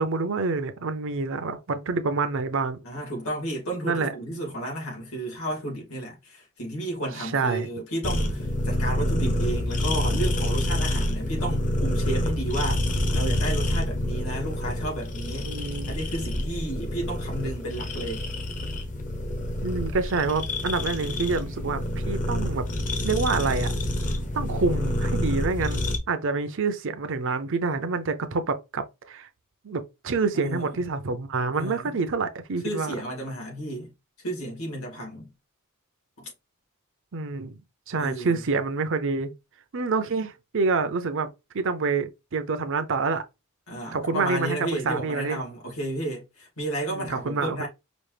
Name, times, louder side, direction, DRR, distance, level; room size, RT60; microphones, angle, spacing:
voice 1, 0.0-2.8 3.8-4.1 7.2-7.7 15.4-15.9 19.6-22.6 23.0-23.7 24.3-29.3 29.6-32.9 37.1-37.5 37.9-39.3 39.7-41.3 41.5-43.2 43.9-45.4 46.9-47.7, right 4 dB, 60° right, 0.6 m, -27 dB
voice 2, 2.8-15.5 15.9-18.3 30.3-30.7 31.5-32.0 32.6-33.9 34.2-35.3 36.2-36.3 38.0-38.4 43.7-47.7, right 1 dB, 70° left, 2.3 m, -32 dB
sound 1, 8.0-26.0, left 1 dB, 35° left, 0.9 m, -27 dB
5.1 x 2.5 x 3.3 m
head